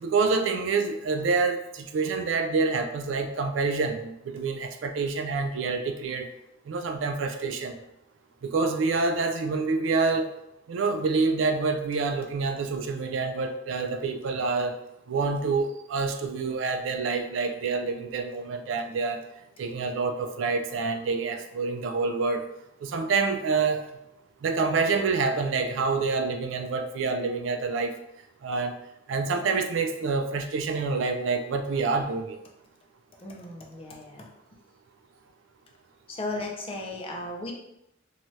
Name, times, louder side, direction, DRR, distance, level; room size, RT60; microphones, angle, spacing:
voice 1, 0.0-6.3 6.7-7.8 8.4-10.3 10.7-14.8 15.1-19.2 19.6-22.4 22.8-23.9 24.4-27.9 28.4-28.7 29.1-32.4, right 4 dB, 80° right, 6 dB, 0.3 m, -27 dB
voice 2, 33.2-34.3 36.1-37.5, left 2 dB, 30° left, 0 dB, 0.5 m, -35 dB
2.7 x 2.3 x 3.1 m, 0.84 s
head